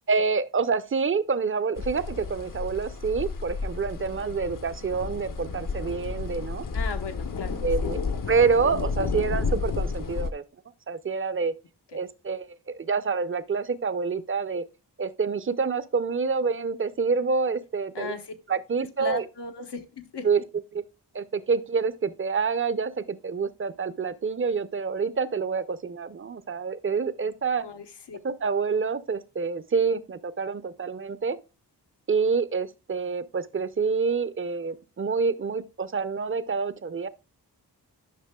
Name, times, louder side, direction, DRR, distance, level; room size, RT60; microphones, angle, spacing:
voice 1, 0.1-6.6 7.6-8.0 8.3-10.4 10.9-11.5 11.9-14.6 15.0-18.1 18.5-19.3 20.2-20.4 20.7-20.8 21.1-27.6 28.2-31.4 32.1-37.1, right 5 dB, 30° right, 0.6 m, -27 dB
sound 1, 1.8-10.3, left 4 dB, 50° left, 0.8 m, -31 dB
voice 2, 6.7-7.9 11.9-12.0 17.9-18.3 19.0-20.3 27.6-28.2, left 5 dB, 75° left, 1.1 m, -37 dB
10.5 x 5.6 x 2.3 m
cardioid pair, 55°, 41 cm